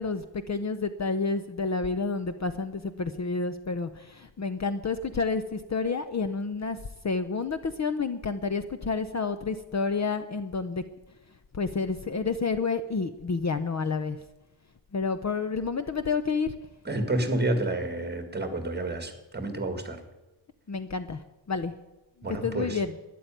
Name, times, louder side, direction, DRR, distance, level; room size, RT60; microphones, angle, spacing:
voice 1, 0.0-6.8 7.0-10.8 11.6-14.2 14.9-16.5 20.7-21.2 21.5-21.7 22.3-23.0, left 4 dB, 40° left, 11 dB, 0.6 m, -29 dB
voice 2, 16.8-20.0 22.2-22.8, right 2 dB, 20° right, 7 dB, 1.9 m, -29 dB
12.5 x 10.0 x 9.1 m, 1.0 s
wide cardioid pair, 175°, 46 cm